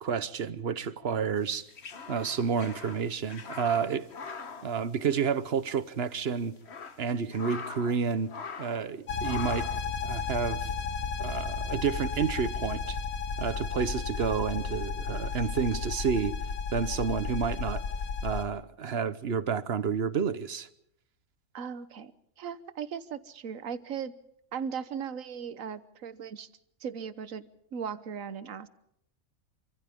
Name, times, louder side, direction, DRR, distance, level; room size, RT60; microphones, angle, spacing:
voice 1, 0.0-1.7 2.1-4.1 4.6-6.6 7.0-9.8 10.0-10.7 11.2-13.0 13.4-16.4 16.7-17.8 18.2-20.7, right 6 dB, 50° right, 1.1 m, -30 dB
sound 1, 1.5-5.5 5.8-5.9 6.4-8.0 8.3-8.9 9.2-9.9, left 5 dB, 50° left, 1.4 m, -43 dB
sound 2, 9.1-18.5, left 5 dB, 80° left, 1.9 m, -33 dB
voice 2, 21.5-24.2 24.5-26.5 26.8-28.7, right 7 dB, 70° right, 1.4 m, -38 dB
28.5 x 25.5 x 3.6 m
omnidirectional pair, 1.5 m